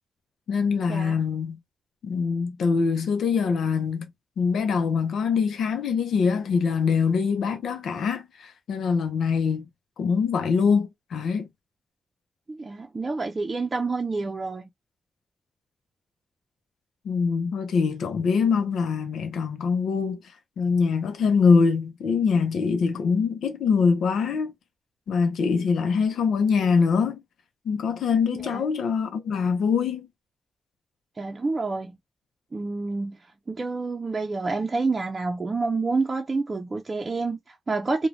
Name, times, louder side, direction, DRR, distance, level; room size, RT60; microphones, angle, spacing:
voice 1, 0.5-1.6 2.0-4.1 4.4-9.7 10.0-11.5 17.0-20.2 20.6-24.5 25.1-27.2 27.7-30.1, left 5 dB, 80° left, 0.5 m, -23 dB
voice 2, 12.5-14.6 28.4-28.6 31.2-31.9 32.5-33.2 33.5-38.1, right 3 dB, 40° right, 0.5 m, -28 dB
2.4 x 2.2 x 3.1 m
supercardioid pair, 45°, 0 cm